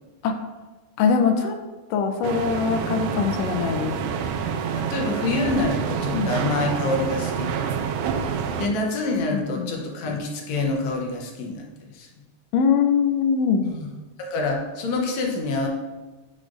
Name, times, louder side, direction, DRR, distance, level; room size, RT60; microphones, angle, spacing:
voice 1, 1.0-1.5 1.9-3.9 6.1-6.4 9.3-9.7 12.5-13.6, left 6 dB, 85° left, 5 dB, 1.4 m, -22 dB
sound 1, 2.2-8.7, right 7 dB, 80° right, 2.0 m, -27 dB
voice 2, 4.8-7.7 8.6-11.7 11.9-12.1 13.6-13.9 14.2-15.7, left 2 dB, 70° left, 1 dB, 1.9 m, -26 dB
8.7 x 4.9 x 2.5 m, 1.2 s
omnidirectional pair, 3.5 m